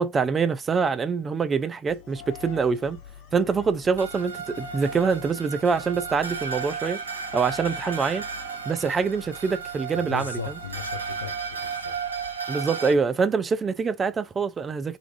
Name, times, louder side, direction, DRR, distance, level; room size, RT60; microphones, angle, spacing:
voice 1, 0.0-3.0 3.3-7.0 7.3-8.3 8.7-10.6 12.5-15.0, right 5 dB, 20° right, 0.4 m, -25 dB
sound 1, 1.9-12.8, left 8 dB, 35° left, 0.9 m, -46 dB
sound 2, 4.0-12.9, right 6 dB, 70° right, 0.8 m, -34 dB
voice 2, 9.9-12.0, left 5 dB, 70° left, 0.5 m, -37 dB
2.5 x 2.4 x 2.5 m
figure-of-eight pair, 90°, 0 cm